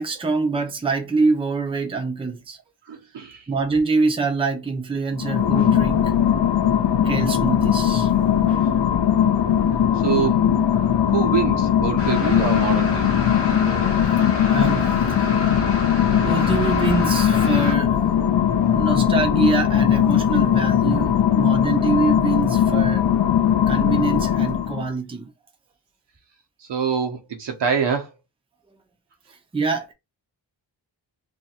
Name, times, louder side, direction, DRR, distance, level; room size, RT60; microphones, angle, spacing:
voice 1, 0.0-2.6 3.5-6.1 7.0-8.1 8.5-8.8 14.5-15.4 16.2-18.0 18.7-23.0 23.7-25.3 29.5-29.9, right 4 dB, 15° right, 0.6 m, -25 dB
voice 2, 2.9-3.5 9.9-10.5 11.1-13.2 15.2-15.6 26.6-28.1, right 7 dB, 70° right, 1.0 m, -25 dB
sound 1, 5.1-24.9, left 9 dB, 70° left, 0.7 m, -19 dB
sound 2, 12.0-17.7, left 3 dB, 30° left, 0.8 m, -29 dB
2.8 x 2.6 x 4.2 m
wide cardioid pair, 165°, 44 cm